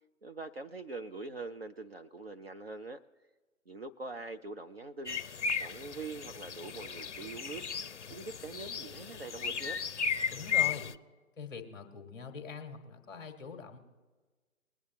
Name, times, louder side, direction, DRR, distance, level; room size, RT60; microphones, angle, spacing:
voice 1, 0.2-3.0 3.7-5.2 5.6-7.6 8.1-9.8, right 3 dB, 45° right, 6 dB, 0.6 m, -43 dB
sound 1, 5.1-11.0, left 7 dB, 55° left, 0.5 m, -35 dB
voice 2, 10.3-10.9 11.4-13.8, left 5 dB, 10° left, 3 dB, 1.4 m, -43 dB
21.5 x 9.5 x 3.0 m, 1.3 s
figure-of-eight pair, 150°, 42 cm